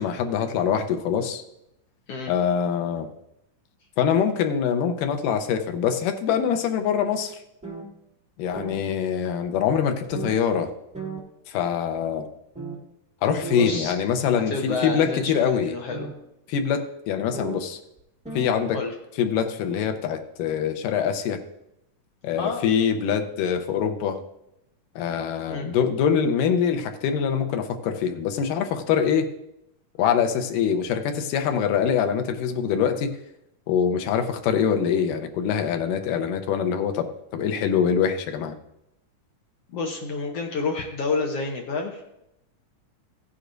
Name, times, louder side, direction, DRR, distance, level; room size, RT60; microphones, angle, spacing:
voice 1, 0.0-1.4 2.3-3.1 4.0-7.4 8.4-10.7 11.5-12.3 13.2-15.7 16.5-17.8 18.3-18.8 19.2-21.4 22.2-24.2 25.0-29.3 30.0-33.1 33.7-37.1 37.3-38.6, left 7 dB, 90° left, 6 dB, 2.4 m, -24 dB
sound 1, 7.6-7.8 8.5-8.8 9.5-9.6 10.1-10.3 10.9-11.2 12.0-12.1 12.5-12.8 13.4-13.7 15.0-15.2 15.9-16.1 17.3-17.6 18.0-18.1 18.2-18.5, right 4 dB, 5° right, 0.7 m, -34 dB
voice 2, 13.6-13.9 14.5-16.1 18.7-18.9 22.4-22.6 25.5-25.7 39.7-42.0, left 4 dB, 65° left, 2 dB, 1.6 m, -29 dB
15.5 x 9.9 x 2.6 m, 0.84 s
omnidirectional pair, 3.7 m